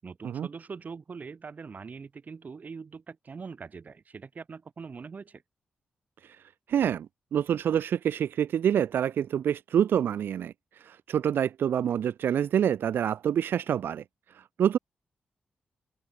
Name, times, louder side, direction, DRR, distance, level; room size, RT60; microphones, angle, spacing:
voice 1, 0.0-5.4, right 5 dB, 50° right, 6.2 m, -42 dB
voice 2, 6.7-7.1 7.3-14.0 14.3-14.8, right 9 dB, 85° right, 0.8 m, -27 dB
open air
cardioid pair, 80°, 4 cm